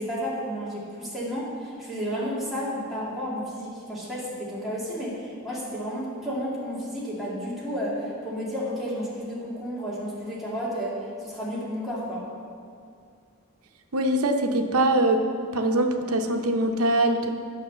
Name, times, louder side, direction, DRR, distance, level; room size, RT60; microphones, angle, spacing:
voice 1, 0.0-10.9 11.2-12.2, equal, ahead, -9 dB, 2.3 m, -32 dB
voice 2, 13.9-15.2 15.5-17.3, right 1 dB, 90° right, 6 dB, 0.8 m, -23 dB
9.3 x 5.9 x 6.7 m, 2.3 s
head